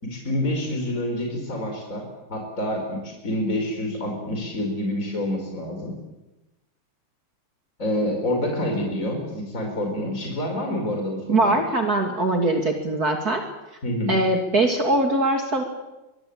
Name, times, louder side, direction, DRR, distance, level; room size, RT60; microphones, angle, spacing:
voice 1, 0.0-6.0 7.8-11.5 13.8-14.2, left 1 dB, 35° left, 2 dB, 5.6 m, -27 dB
voice 2, 11.3-13.4 14.1-15.6, right 2 dB, 45° right, 3 dB, 3.1 m, -21 dB
24.5 x 22.5 x 8.9 m, 1.0 s
omnidirectional pair, 2.4 m